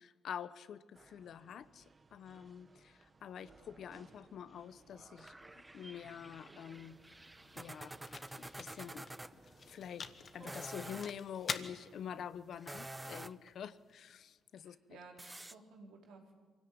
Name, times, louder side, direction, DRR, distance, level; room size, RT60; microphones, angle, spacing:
voice 1, 0.0-1.8 2.1-7.0 7.5-8.0 8.4-9.1 9.7-10.1 10.3-14.8, left 8 dB, 65° left, 15 dB, 1.0 m, -47 dB
sound 1, 0.9-10.8, right 3 dB, 30° right, 1.1 m, -62 dB
sound 2, 5.2-9.3 10.3-11.1 12.5-13.5 15.2-15.5, right 1 dB, 10° right, 0.7 m, -49 dB
sound 3, 6.5-14.6, left 5 dB, 45° left, 1.6 m, -49 dB
voice 2, 14.6-16.3, right 4 dB, 85° right, 2 dB, 4.2 m, -56 dB
23.5 x 16.5 x 9.6 m, 1.4 s
cardioid pair, 90°, 0 cm